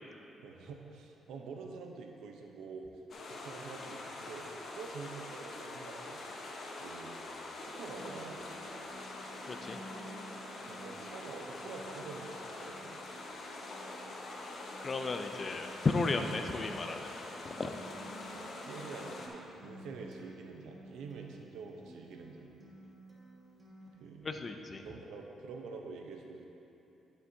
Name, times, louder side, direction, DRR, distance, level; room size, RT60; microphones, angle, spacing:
voice 1, 0.4-4.5 4.7-6.2 6.8-7.2 7.6-8.4 10.6-13.0 18.3-22.6 24.0-24.3 24.8-26.4, right 4 dB, 80° right, 2 dB, 0.8 m, -47 dB
sound 1, 3.1-19.3, left 2 dB, 55° left, 1.1 m, -45 dB
Acoustic guitar, 7.9-23.9, right 1 dB, 25° right, 1.6 m, -54 dB
voice 2, 9.5-9.8 14.8-17.1 17.4-17.8 24.2-24.8, left 3 dB, 35° left, 6 dB, 0.6 m, -34 dB
12.0 x 6.9 x 2.8 m, 2.9 s
cardioid pair, 90°, 0 cm